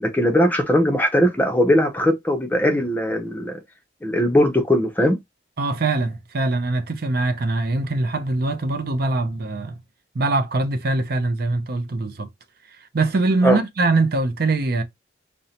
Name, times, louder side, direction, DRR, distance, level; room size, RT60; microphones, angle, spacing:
voice 1, 0.0-3.6 4.0-5.2 13.4-13.6, equal, 10° left, 0.6 m, -19 dB
voice 2, 5.6-9.8 10.1-12.3 12.7-14.8, right 2 dB, 50° right, 0.5 m, -22 dB
5.2 x 2.1 x 2.8 m
head